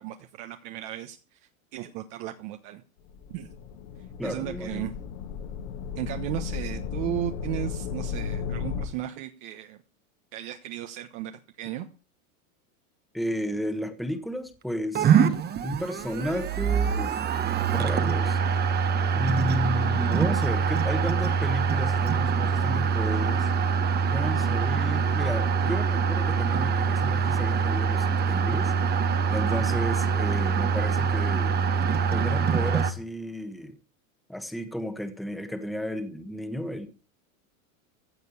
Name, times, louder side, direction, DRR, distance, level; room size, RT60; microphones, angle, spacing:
voice 1, 0.0-1.4 1.7-2.8 3.3-3.5 4.2-4.9 6.0-9.8 10.3-11.9 29.5-29.7, right 12 dB, 55° right, 1.3 m, -35 dB
sound 1, 3.1-8.9, left 6 dB, 65° left, 2.4 m, -34 dB
voice 2, 4.2-4.9 13.1-15.1 15.6-18.7 19.1-23.8 24.1-29.0 29.3-31.6 32.1-33.8 34.3-36.9, left 1 dB, ahead, 1.4 m, -33 dB
sound 2, 15.0-32.9, right 6 dB, 25° right, 1.1 m, -24 dB
15.5 x 5.2 x 8.4 m
supercardioid pair, 135°, 41 cm